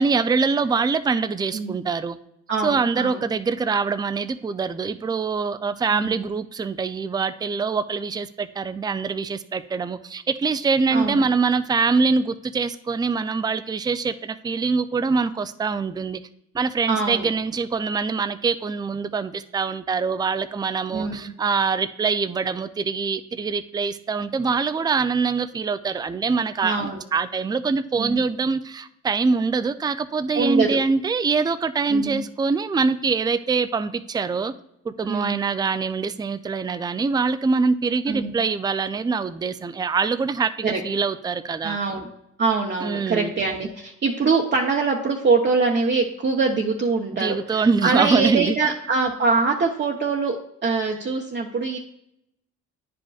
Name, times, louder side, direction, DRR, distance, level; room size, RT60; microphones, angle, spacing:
voice 1, 0.0-2.2 2.6-16.2 16.5-34.5 34.8-41.8 42.8-43.3 47.1-48.6, right 4 dB, 15° right, 0.4 m, -24 dB
voice 2, 2.5-3.2 5.9-6.3 10.9-11.2 16.9-17.3 20.9-21.2 26.6-27.0 28.0-28.2 30.3-30.8 31.9-32.2 35.1-35.4 38.1-38.3 40.6-40.8 41.6-42.1 42.4-50.4 50.6-51.8, right 4 dB, 35° right, 0.9 m, -23 dB
10.0 x 5.1 x 2.4 m
cardioid pair, 90°, 30 cm